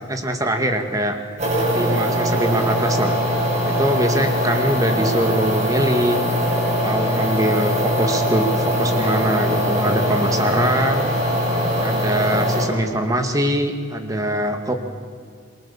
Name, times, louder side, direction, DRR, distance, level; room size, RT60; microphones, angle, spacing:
voice 1, 0.1-1.2 1.7-3.2 3.6-6.2 6.8-11.1 11.8-14.7, right 1 dB, 15° right, 5 dB, 2.1 m, -22 dB
sound 1, 1.4-12.7, equal, 35° right, 7.6 m, -21 dB
27.0 x 23.5 x 7.3 m, 2.1 s
head